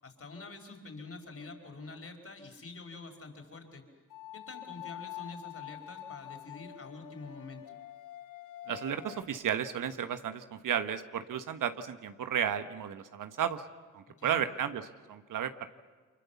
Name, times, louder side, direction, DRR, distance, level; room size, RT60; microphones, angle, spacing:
voice 1, 0.0-3.8 4.3-7.6 14.2-14.4, left 3 dB, 45° left, 4 dB, 5.0 m, -46 dB
sound 1, 1.4-2.1 4.1-9.2, left 13 dB, 80° left, 1.2 m, -46 dB
voice 2, 8.7-13.6 13.9-15.7, right 9 dB, 85° right, 10 dB, 1.4 m, -33 dB
29.5 x 24.5 x 7.1 m, 1.4 s
cardioid pair, 55°, 31 cm